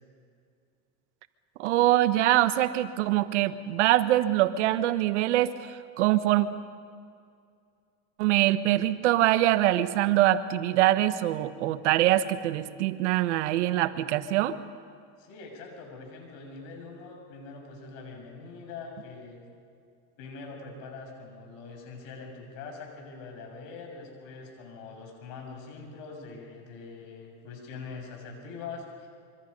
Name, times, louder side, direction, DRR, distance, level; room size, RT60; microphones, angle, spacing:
voice 1, 1.6-6.5 8.2-14.6, right 14 dB, 85° right, 12 dB, 1.2 m, -24 dB
voice 2, 15.2-19.4 20.2-29.1, left 4 dB, 70° left, 2 dB, 6.9 m, -43 dB
25.5 x 24.5 x 5.4 m, 2.3 s
supercardioid pair, 110°, 34 cm